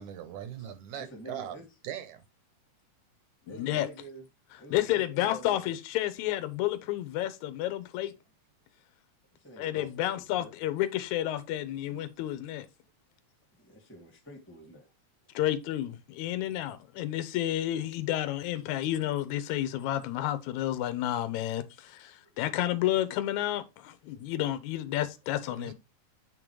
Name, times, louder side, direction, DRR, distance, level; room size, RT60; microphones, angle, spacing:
voice 1, 0.0-1.6 1.8-2.2 25.5-25.7, right 10 dB, 75° right, 2.1 m, -40 dB
voice 2, 0.6-1.6 3.4-4.2 4.6-5.7 9.3-10.5 13.5-14.9 16.3-16.4 22.2-22.4, equal, 5° left, 1.0 m, -48 dB
voice 3, 3.5-3.9 4.7-8.1 9.6-12.7 15.3-25.7, left 13 dB, 75° left, 2.1 m, -31 dB
8.2 x 3.8 x 4.6 m
omnidirectional pair, 3.6 m